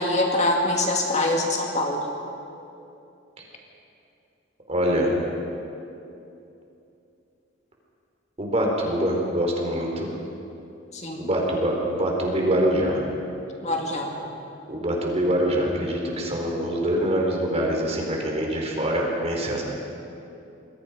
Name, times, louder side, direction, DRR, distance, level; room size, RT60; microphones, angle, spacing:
voice 1, 0.0-2.1 10.9-11.3 13.6-14.2, left 1 dB, 35° left, 0 dB, 2.5 m, -24 dB
voice 2, 4.7-5.1 8.4-10.1 11.1-13.0 14.7-19.6, equal, 35° right, 0 dB, 4.3 m, -24 dB
27.0 x 22.0 x 5.2 m, 2.8 s
head